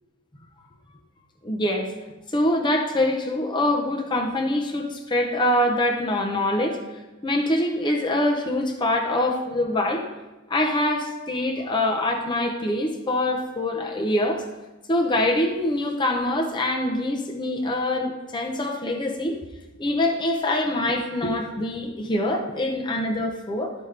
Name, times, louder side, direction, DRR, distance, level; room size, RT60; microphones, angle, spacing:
voice 1, 1.4-1.9 2.3-6.8 7.2-10.0 10.5-14.4 14.9-19.4 19.8-23.7, left 1 dB, 20° left, 1 dB, 0.7 m, -24 dB
13.0 x 5.3 x 3.3 m, 1.1 s
head